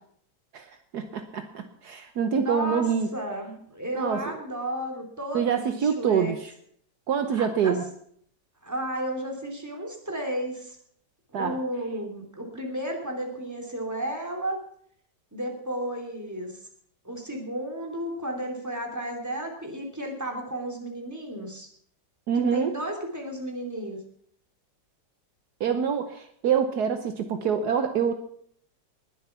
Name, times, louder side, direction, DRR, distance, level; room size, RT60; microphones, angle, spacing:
voice 1, 0.5-3.1 3.9-4.2 5.3-6.5 7.1-7.8 11.3-11.6 22.3-22.7 25.6-28.1, right 7 dB, 70° right, 8 dB, 1.4 m, -26 dB
voice 2, 2.3-6.4 7.3-7.8 8.6-10.8 11.3-14.6 15.3-16.6 17.0-21.7 22.3-24.0, right 1 dB, 10° right, 1 dB, 2.9 m, -33 dB
19.5 x 8.0 x 5.9 m, 0.65 s
omnidirectional pair, 1.9 m